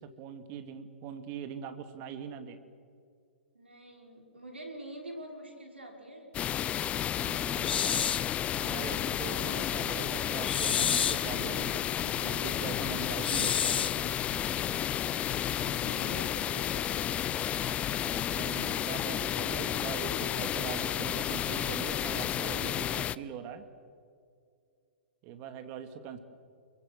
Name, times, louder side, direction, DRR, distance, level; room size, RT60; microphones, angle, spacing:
voice 1, 0.0-2.6 7.2-8.1 8.6-14.1 18.0-23.7 25.2-26.2, right 8 dB, 35° right, 8 dB, 2.5 m, -42 dB
voice 2, 3.5-6.3 15.5-17.5, right 1 dB, 85° right, 2 dB, 5.4 m, -46 dB
sound 1, 6.3-23.2, left 10 dB, 20° left, 0.5 m, -32 dB
sound 2, 7.6-8.3 10.4-11.3 13.2-14.0, left 8 dB, 70° left, 0.7 m, -29 dB
29.0 x 23.0 x 6.8 m, 2.3 s
figure-of-eight pair, 115°, 6 cm